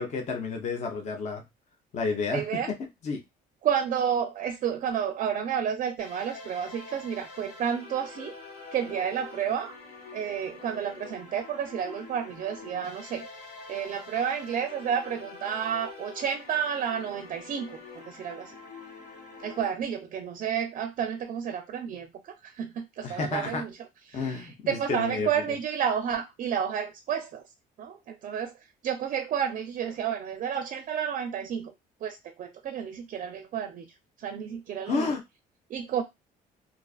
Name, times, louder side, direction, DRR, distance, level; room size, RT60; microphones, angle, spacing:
voice 1, 0.0-1.4 1.9-2.6 3.0-3.2 23.0-23.6 24.1-25.3 34.8-35.2, left 4 dB, 45° left, 0.6 m, -30 dB
voice 2, 2.3-2.7 3.6-8.3 8.7-9.7 10.1-13.3 13.7-18.5 19.4-22.1 22.4-23.7 24.1-27.4 27.8-28.5 28.8-31.7 32.0-33.9 34.2-35.1 35.7-36.0, right 8 dB, 50° right, 0.4 m, -31 dB
sound 1, 6.0-19.7, left 4 dB, 80° left, 1.3 m, -45 dB
2.4 x 2.4 x 2.3 m
cardioid pair, 110°, 17 cm